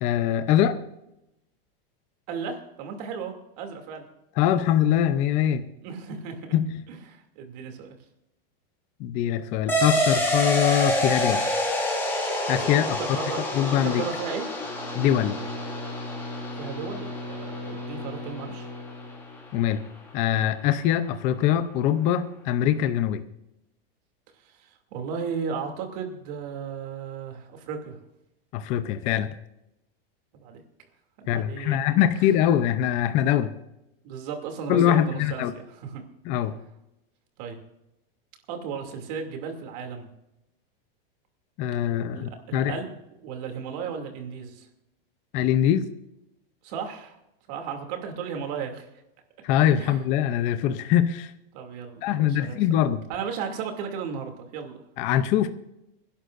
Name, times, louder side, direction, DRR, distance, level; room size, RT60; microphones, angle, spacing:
voice 1, 0.0-0.8 4.4-5.6 6.5-6.8 9.0-11.4 12.5-13.0 13.5-14.0 14.9-15.4 19.5-19.8 20.1-23.2 28.5-29.3 31.3-33.5 34.7-35.5 36.3-36.6 41.6-42.7 45.3-45.9 49.4-51.3 52.0-53.0 55.0-55.5, left 10 dB, 25° left, 11 dB, 0.6 m, -23 dB
voice 2, 2.3-4.1 5.8-6.6 6.9-8.0 13.0-13.4 13.8-14.4 16.6-18.7 24.4-28.0 30.3-30.6 31.2-31.8 34.0-36.0 37.4-37.6 38.5-40.1 42.1-43.0 43.2-44.7 46.6-47.2 47.5-48.9 49.8-50.0 51.5-52.6 53.1-54.8, right 6 dB, 45° right, 4 dB, 2.6 m, -35 dB
sound 1, 9.7-18.7, left 1 dB, 5° left, 2.7 m, -28 dB
Bowed string instrument, 14.5-19.9, left 1 dB, 20° right, 4.8 m, -38 dB
27.0 x 11.5 x 2.5 m, 0.87 s
supercardioid pair, 170°, 29 cm